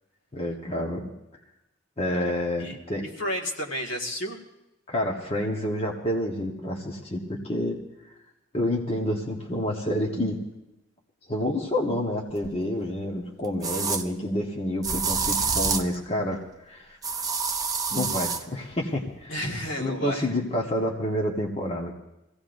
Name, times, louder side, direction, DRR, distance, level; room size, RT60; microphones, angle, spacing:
voice 1, 0.3-1.1 2.0-3.0 4.9-7.8 8.5-10.4 11.3-17.0 17.9-19.3 19.8-21.9, left 1 dB, 30° left, -1 dB, 1.2 m, -28 dB
voice 2, 2.1-4.4 19.3-20.3, equal, 65° left, 0 dB, 1.9 m, -32 dB
sound 1, 12.4-12.5 13.6-14.0 14.8-15.9 17.0-18.4, right 5 dB, 20° right, 0.6 m, -27 dB
23.0 x 16.5 x 2.6 m, 0.95 s
head